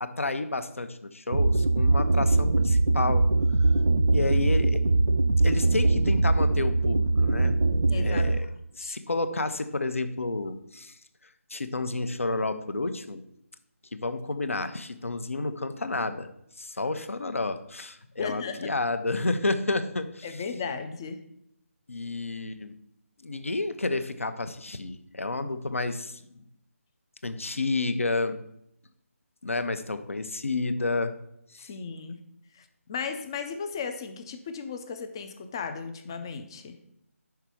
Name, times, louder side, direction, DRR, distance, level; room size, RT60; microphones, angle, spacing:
voice 1, 0.0-3.4 4.1-4.8 5.4-7.6 7.9-8.5 8.7-11.0 11.5-13.2 13.9-16.3 16.6-20.4 21.9-22.8 23.2-26.4 27.2-28.4 29.4-31.1 31.5-31.7, left 3 dB, 65° left, 10 dB, 0.7 m, -30 dB
sound 1, 1.3-8.4, right 2 dB, 60° right, 0.4 m, -22 dB
voice 2, 7.9-8.2 8.8-9.0 18.2-18.7 20.2-21.2 31.6-32.2 32.5-36.8, left 5 dB, 20° left, 8 dB, 0.4 m, -35 dB
5.7 x 4.6 x 6.2 m, 0.76 s
figure-of-eight pair, 150°, 8 cm